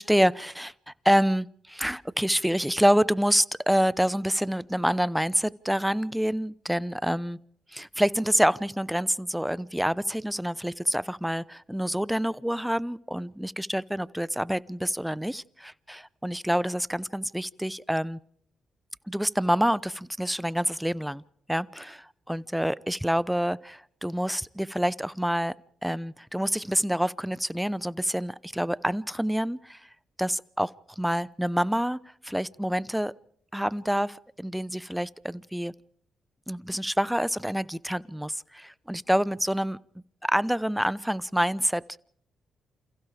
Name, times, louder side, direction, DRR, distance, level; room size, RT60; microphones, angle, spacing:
voice 1, 0.0-7.4 7.7-18.2 19.1-21.2 21.5-25.5 25.8-29.8 30.2-30.7 31.0-33.1 33.5-35.7 36.5-39.8 40.2-42.0, equal, 5° right, 0.8 m, -27 dB
29.0 x 28.0 x 3.4 m
hypercardioid pair, 40°, 0 cm